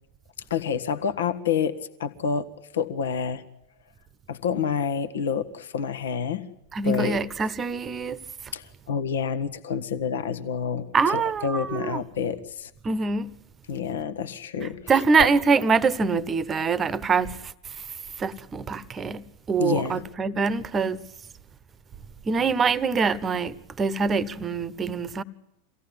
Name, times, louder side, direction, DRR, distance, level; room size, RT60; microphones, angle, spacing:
voice 1, 0.5-2.5 2.7-3.4 4.3-6.4 6.8-7.2 8.5-12.7 13.7-15.3 19.6-20.0, left 6 dB, 65° left, 1.4 m, -28 dB
voice 2, 6.7-8.2 10.9-12.0 12.8-13.3 14.9-17.4 18.2-21.0 22.3-25.2, right 5 dB, 20° right, 1.1 m, -24 dB
24.5 x 17.0 x 9.8 m
figure-of-eight pair, 90°, 0 cm